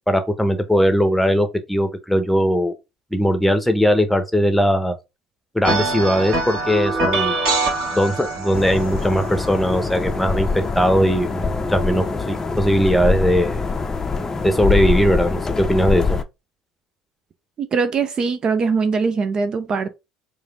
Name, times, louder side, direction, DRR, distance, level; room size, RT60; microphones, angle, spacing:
voice 1, 0.1-2.7 3.1-4.9 5.5-7.3 7.9-10.5 10.8-13.6 14.4-16.2, equal, 5° left, 0.9 m, -19 dB
sound 1, 5.6-11.1, right 2 dB, 60° right, 2.1 m, -24 dB
sound 2, 8.5-16.2, left 4 dB, 20° left, 0.6 m, -24 dB
voice 2, 17.6-19.9, right 5 dB, 40° right, 0.5 m, -21 dB
4.9 x 2.5 x 3.4 m
figure-of-eight pair, 60°, 2 cm